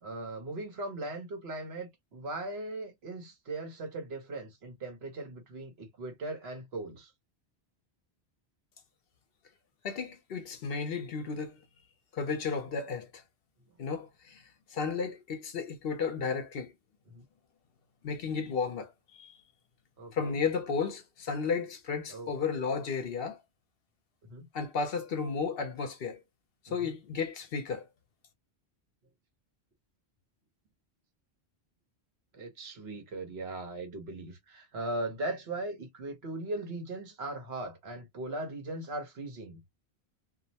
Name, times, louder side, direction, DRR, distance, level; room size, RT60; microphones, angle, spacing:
voice 1, 0.0-7.1 17.1-17.2 20.0-20.4 22.1-22.3 24.2-24.4 26.7-27.0 32.3-39.7, right 2 dB, 70° right, 1.2 m, -39 dB
voice 2, 9.8-11.6 12.1-13.2 13.8-14.4 14.7-16.7 18.0-19.4 20.1-23.4 24.5-26.2 26.7-27.8, left 5 dB, 65° left, 0.8 m, -33 dB
2.6 x 2.1 x 2.7 m
omnidirectional pair, 1.1 m